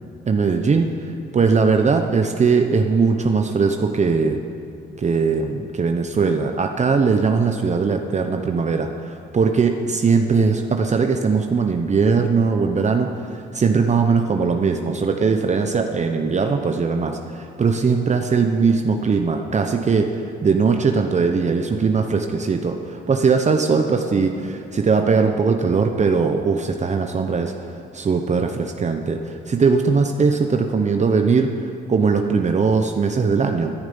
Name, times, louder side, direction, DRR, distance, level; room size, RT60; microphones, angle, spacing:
voice 1, 0.3-4.4 5.0-33.7, right 5 dB, 35° right, 4 dB, 1.0 m, -20 dB
17.0 x 10.5 x 5.4 m, 2.6 s
cardioid pair, 90°, 20 cm